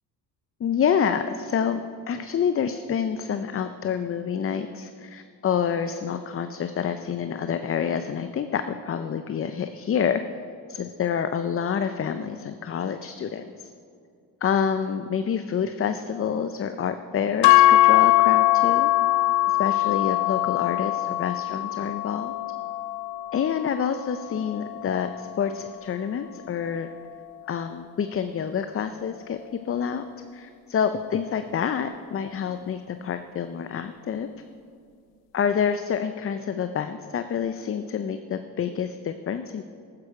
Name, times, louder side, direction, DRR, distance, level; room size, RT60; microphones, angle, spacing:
voice 1, 0.6-1.8 2.1-10.2 10.7-13.7 14.4-18.9 19.5-22.3 23.3-26.9 27.5-29.4 29.7-30.0 30.3-34.3 35.3-39.6, left 7 dB, 35° left, 9 dB, 0.5 m, -27 dB
sound 1, 17.4-25.7, left 16 dB, 90° left, 0.6 m, -22 dB
13.0 x 9.7 x 4.8 m, 2.3 s
cardioid pair, 85°, 41 cm